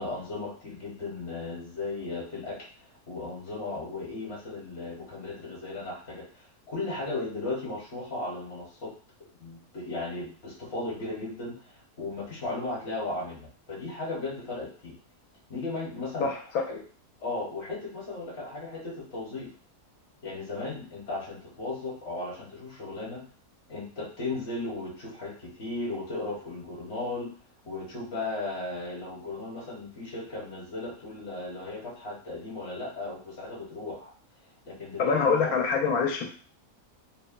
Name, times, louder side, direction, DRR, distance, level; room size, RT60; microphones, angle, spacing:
voice 1, 0.0-8.9 9.4-15.0 15.5-16.3 16.7-16.8 17.2-19.5 20.2-23.2 23.7-27.3 27.7-34.1 34.7-35.5, left 2 dB, 50° left, -3 dB, 1.0 m, -36 dB
voice 2, 35.0-36.3, left 5 dB, 75° left, 2 dB, 1.0 m, -24 dB
3.0 x 2.1 x 2.3 m, 0.42 s
omnidirectional pair, 1.6 m